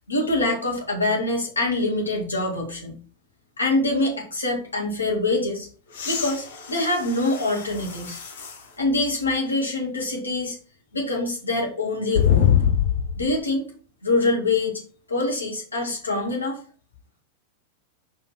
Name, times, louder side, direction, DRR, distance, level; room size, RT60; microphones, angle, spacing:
voice 1, 0.1-2.9 3.6-5.7 6.0-8.2 8.8-10.6 10.9-12.5 13.2-13.7 14.0-14.8 15.1-16.6, left 2 dB, 80° left, 0 dB, 2.0 m, -25 dB
sound 1, 5.9-8.7 9.3-9.4 12.1-13.4 15.2-15.3, left 9 dB, 60° left, 1.2 m, -24 dB
5.4 x 4.2 x 4.2 m, 0.41 s
figure-of-eight pair, 90°, 0 cm